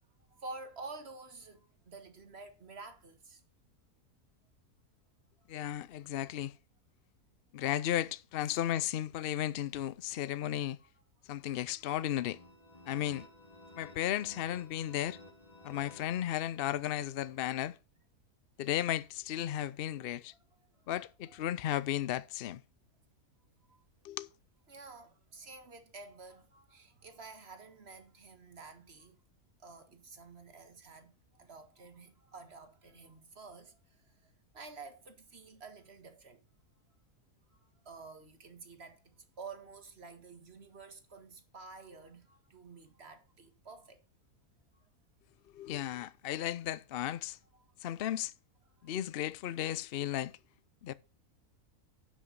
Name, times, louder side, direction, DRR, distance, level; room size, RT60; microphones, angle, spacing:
voice 1, 0.3-3.4 5.4-5.5 6.1-6.2 8.5-8.6 10.3-10.4 10.8-10.9 11.2-11.5 14.3-14.4 20.3-20.4 20.7-20.9 21.3-21.4 23.7-23.9 24.7-29.2 29.6-36.4 37.5-44.0 44.7-44.9 47.5-47.7 48.0-48.1 48.8-48.9, right 3 dB, 45° right, 1.9 m, -51 dB
voice 2, 5.5-6.5 7.5-10.8 11.3-12.4 12.9-13.3 13.8-15.2 15.6-17.8 18.6-20.3 20.9-22.6 24.0-24.3 45.5-47.4 47.8-48.3 48.8-50.3 50.8-50.9, left 12 dB, 65° left, 0.5 m, -34 dB
sound 1, 12.2-16.9, left 2 dB, 25° left, 3.5 m, -55 dB
11.0 x 6.3 x 5.3 m
omnidirectional pair, 1.6 m